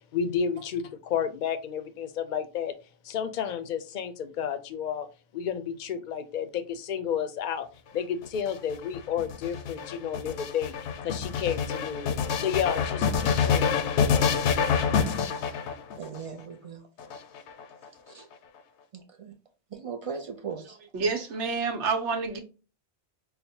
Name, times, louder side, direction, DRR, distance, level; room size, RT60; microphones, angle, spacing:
voice 1, 0.1-2.7 3.0-5.1 5.3-7.7 7.9-10.7 11.0-12.1 12.4-14.1, left 8 dB, 55° left, 0.6 m, -31 dB
sound 1, 8.2-16.2 17.0-17.9, left 6 dB, 80° left, 0.8 m, -27 dB
voice 2, 16.0-16.9 18.0-18.3 18.9-19.3 19.7-20.8, right 6 dB, 55° right, 0.3 m, -38 dB
voice 3, 20.9-22.4, right 4 dB, 85° right, 1.1 m, -28 dB
5.7 x 2.1 x 2.7 m
omnidirectional pair, 1.2 m